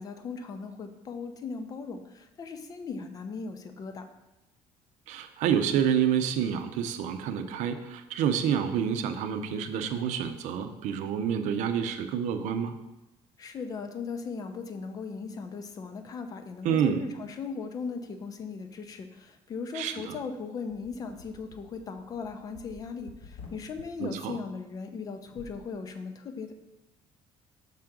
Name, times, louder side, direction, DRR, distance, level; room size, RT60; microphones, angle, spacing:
voice 1, 0.0-4.1 13.4-26.5, left 5 dB, 30° left, 8 dB, 0.5 m, -38 dB
voice 2, 5.1-12.8 16.6-17.0 19.7-20.2 24.0-24.4, right 8 dB, 75° right, 8 dB, 0.6 m, -28 dB
sound 1, 20.7-23.9 25.2-25.6, left 4 dB, 70° left, 1.6 m, -50 dB
5.7 x 3.8 x 5.9 m, 0.97 s
cardioid pair, 175°, 12 cm